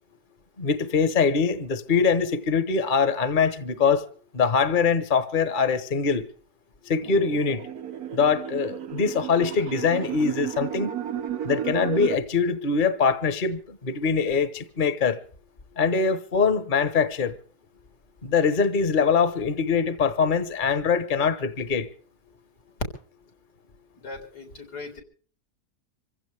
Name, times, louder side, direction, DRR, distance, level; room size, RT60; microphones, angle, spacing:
voice 1, 0.6-4.0 4.3-6.3 6.9-7.6 8.1-10.9 11.4-15.2 15.8-17.3 18.2-21.9, left 5 dB, 35° left, 1.3 m, -23 dB
sound 1, 7.0-12.2, right 9 dB, 70° right, 1.6 m, -33 dB
voice 2, 24.0-25.0, left 3 dB, 85° left, 4.3 m, -39 dB
26.0 x 15.5 x 3.5 m
omnidirectional pair, 1.7 m